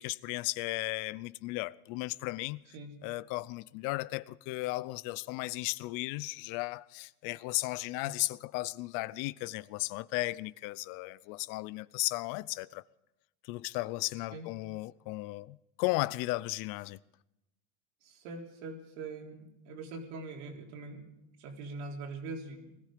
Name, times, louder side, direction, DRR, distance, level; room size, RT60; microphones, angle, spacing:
voice 1, 0.0-2.6 3.0-12.8 13.4-17.0, left 20 dB, 65° left, 0.6 m, -35 dB
voice 2, 18.0-21.1 21.4-22.7, right 3 dB, 75° right, 3.8 m, -43 dB
20.0 x 14.0 x 5.1 m
supercardioid pair, 120°, 34 cm